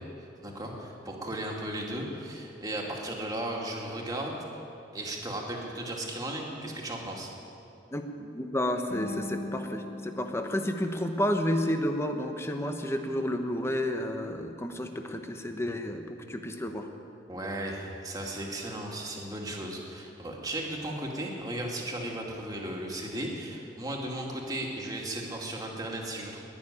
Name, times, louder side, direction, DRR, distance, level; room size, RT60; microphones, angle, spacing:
voice 1, 0.4-4.4 4.9-7.3 17.3-26.4, right 1 dB, 20° right, -1 dB, 2.3 m, -35 dB
voice 2, 7.9-16.0 16.3-16.9, left 1 dB, 15° left, 5 dB, 1.1 m, -31 dB
sound 1, 8.9-12.0, left 2 dB, 55° left, 2.7 m, -41 dB
20.0 x 6.9 x 9.9 m, 2.6 s
head